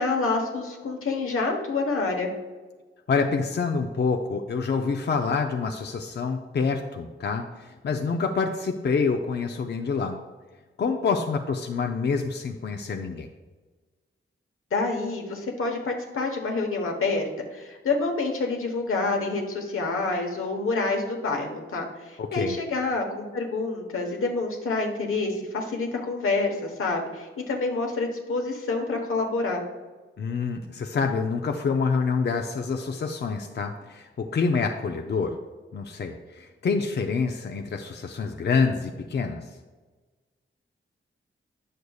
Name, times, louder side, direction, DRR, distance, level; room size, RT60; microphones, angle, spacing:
voice 1, 0.0-2.3 14.7-29.6, left 3 dB, 85° left, 2 dB, 1.1 m, -27 dB
voice 2, 3.1-10.2 10.8-13.3 22.2-22.6 30.2-35.4 35.7-39.5, left 5 dB, 55° left, 4 dB, 0.5 m, -27 dB
9.4 x 6.5 x 2.3 m, 1.3 s
cardioid pair, 75°, 21 cm